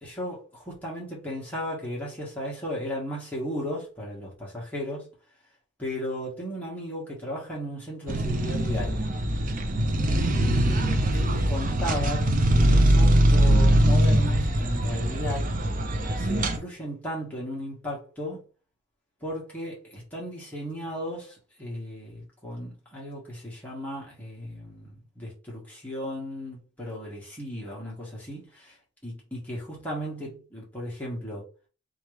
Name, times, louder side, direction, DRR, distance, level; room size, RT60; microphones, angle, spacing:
voice 1, 0.0-5.1 5.8-9.0 10.1-15.6 16.1-18.4 19.2-28.8 29.0-31.4, equal, 10° left, 1.4 m, -35 dB
sound 1, 8.1-16.6, right 1 dB, 40° right, 0.5 m, -22 dB
3.7 x 3.1 x 3.3 m
head